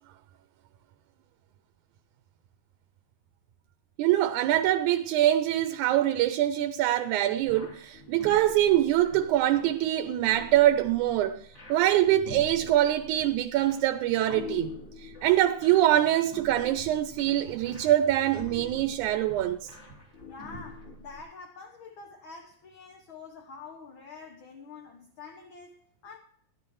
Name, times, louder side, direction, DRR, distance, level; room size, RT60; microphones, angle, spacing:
voice 1, 4.0-19.7, right 13 dB, 85° right, 2.0 m, -24 dB
sound 1, 7.4-21.2, left 2 dB, 40° left, 4.0 m, -45 dB
voice 2, 20.3-26.2, left 4 dB, 60° left, 1.4 m, -46 dB
16.0 x 11.0 x 3.1 m
omnidirectional pair, 3.5 m